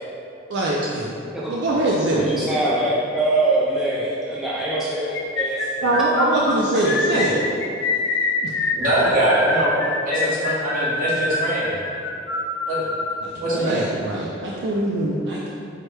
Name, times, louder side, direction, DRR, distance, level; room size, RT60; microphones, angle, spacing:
voice 1, 0.5-1.2 1.5-2.3 5.8-7.4 8.4-8.5 13.2-15.5, right 1 dB, 65° right, -4 dB, 0.4 m, -23 dB
voice 2, 2.1-5.7, right 2 dB, ahead, -7 dB, 0.4 m, -23 dB
sound 1, 5.1-13.2, left 3 dB, 85° left, 0.4 m, -25 dB
voice 3, 8.7-9.8 10.0-11.7 12.7-12.8 13.3-13.9, right 1 dB, 45° right, -9 dB, 1.4 m, -22 dB
4.6 x 2.2 x 4.6 m, 2.5 s
head